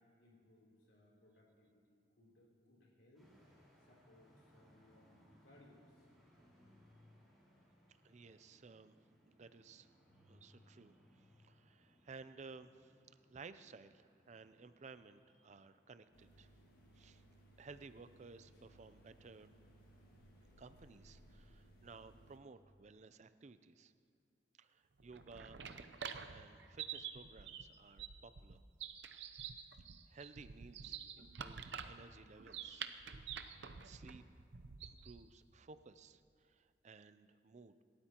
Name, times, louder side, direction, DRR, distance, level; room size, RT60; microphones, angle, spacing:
voice 1, 0.2-3.3 3.8-6.0, left 1 dB, 90° left, -3 dB, 3.4 m, -66 dB
sound 1, 3.1-21.5, equal, ahead, 4.5 m, -69 dB
voice 2, 8.0-9.0 9.3-9.9 10.3-12.9 13.3-16.5 16.9-17.2 17.6-19.5 20.6-23.9 24.6-25.6 26.2-28.6 30.1-32.9 33.6-34.2 34.8-37.8, right 4 dB, 40° right, 12 dB, 0.5 m, -57 dB
sound 2, 16.1-22.4, right 1 dB, 55° left, 1.8 m, -64 dB
sound 3, 25.0-35.2, right 7 dB, 80° right, 0.7 m, -48 dB
27.0 x 13.0 x 2.9 m, 2.4 s
head